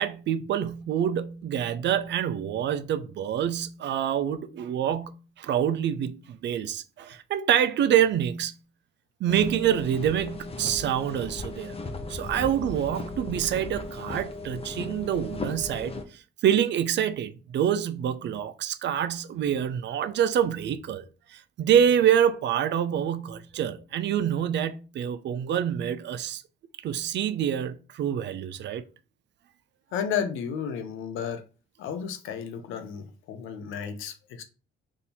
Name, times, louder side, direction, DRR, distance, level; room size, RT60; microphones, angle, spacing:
voice 1, 0.0-8.5 9.2-11.8 12.1-16.0 16.4-21.0 21.3-26.4 26.8-28.8, right 9 dB, 65° right, 0.5 m, -26 dB
sound 1, 9.3-16.0, left 3 dB, 30° left, 0.8 m, -37 dB
voice 2, 29.9-31.4 31.8-34.4, left 7 dB, 85° left, 0.7 m, -32 dB
3.6 x 2.7 x 4.2 m
cardioid pair, 90°, 20 cm